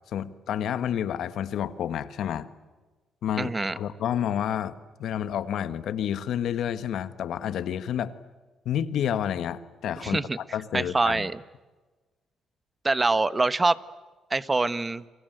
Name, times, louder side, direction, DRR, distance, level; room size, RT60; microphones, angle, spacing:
voice 1, 0.1-2.5 3.2-4.7 5.0-8.1 8.6-10.2 10.5-11.3, left 9 dB, 70° left, 13 dB, 1.5 m, -29 dB
voice 2, 3.4-3.8 10.0-10.4 10.7-11.4 12.8-13.8 14.3-15.0, right 3 dB, 20° right, 15 dB, 1.2 m, -24 dB
29.5 x 23.5 x 8.0 m, 1.3 s
cardioid pair, 90°, 0 cm